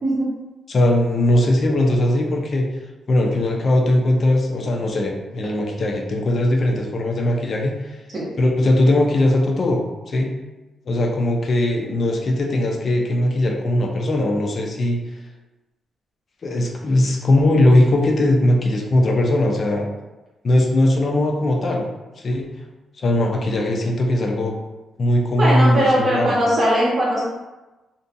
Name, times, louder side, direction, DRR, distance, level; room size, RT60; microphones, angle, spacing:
voice 1, 0.7-2.6 3.1-8.0 8.4-10.3 10.9-15.0 16.4-19.9 20.4-21.9 22.2-22.5 23.0-24.5 25.0-26.3, left 1 dB, 50° left, 1 dB, 0.5 m, -19 dB
voice 2, 25.3-27.2, equal, 40° right, -7 dB, 0.9 m, -19 dB
2.6 x 2.2 x 2.6 m, 1.1 s
cardioid pair, 90°, 0 cm